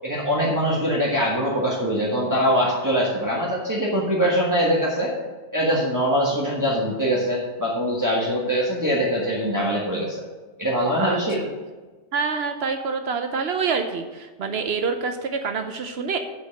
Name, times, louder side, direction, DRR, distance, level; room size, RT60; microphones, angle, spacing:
voice 1, 0.0-5.1 5.5-10.3 10.6-11.4, equal, 15° right, -5 dB, 1.5 m, -23 dB
voice 2, 11.0-11.5 12.1-16.2, right 5 dB, 75° right, 6 dB, 0.9 m, -26 dB
8.1 x 6.6 x 6.5 m, 1.3 s
omnidirectional pair, 1.1 m